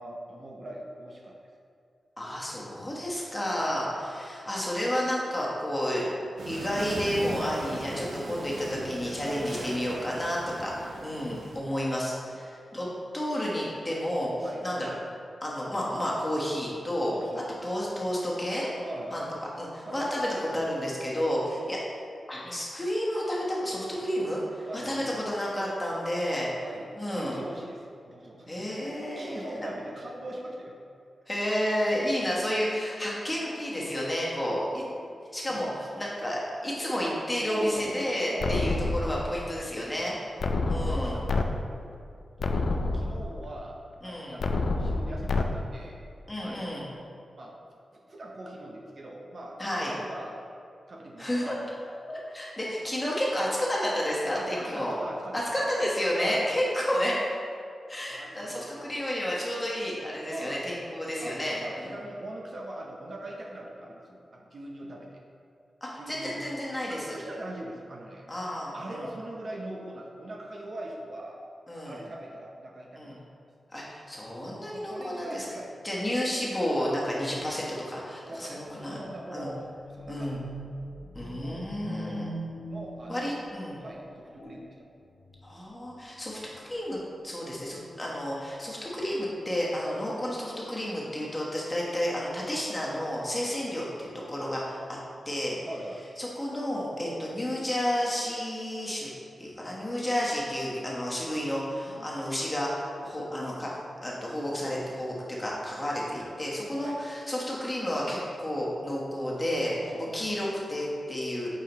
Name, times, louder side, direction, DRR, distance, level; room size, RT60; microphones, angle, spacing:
voice 1, 0.0-1.4 3.6-3.7 9.2-9.5 9.9-10.1 14.4-14.6 17.1-17.6 18.8-19.2 19.8-20.1 24.6-25.2 26.6-30.7 33.8-34.0 35.5-35.6 37.5-38.7 39.9-40.2 40.6-41.8 42.5-43.8 44.0-46.0 46.4-46.9 47.3-47.5 47.9-50.5 50.9-51.6 52.8-52.9 54.3-55.7 56.1-56.4 58.1-58.8 60.3-60.6 61.2-65.2 66.0-66.5 66.9-68.2 68.7-71.4 71.8-73.2 74.7-75.7 78.1-80.5 81.4-81.6 82.7-83.3 83.8-84.7 89.9-90.0 95.7-96.0 101.8-102.1 106.8-107.0 109.8-110.2, right 1 dB, 45° right, -1 dB, 0.7 m, -41 dB
voice 2, 2.2-12.9 13.1-14.3 14.6-14.9 15.4-17.1 17.6-18.7 19.1-19.2 19.6-21.8 22.3-26.5 27.0-27.4 28.5-29.7 31.3-34.9 35.3-40.1 40.7-41.2 44.0-44.4 46.3-46.8 49.6-49.9 51.2-51.5 52.1-55.0 55.3-57.3 57.9-62.0 65.8-67.2 68.3-69.0 71.7-72.0 73.0-73.2 73.7-75.4 75.8-79.0 79.3-79.5 80.1-80.4 81.1-82.3 83.1-83.8 85.4-94.8 95.2-95.6 96.2-99.1 99.4-103.7 104.0-109.7 110.1-111.5, equal, 15° left, -5 dB, 1.3 m, -31 dB
sound 1, 6.4-11.6, right 2 dB, 80° right, 0.6 m, -39 dB
sound 2, 38.4-39.4 40.4-41.4 41.9-42.0 42.4-43.4 44.4-45.4, left 3 dB, 65° left, 0.4 m, -28 dB
sound 3, 78.7-83.7 84.3-84.7 85.1-85.7 86.3-86.5 86.9-87.0, right 1 dB, 80° left, 1.6 m, -41 dB
8.8 x 4.6 x 3.0 m, 2.4 s
wide cardioid pair, 130°, 0 cm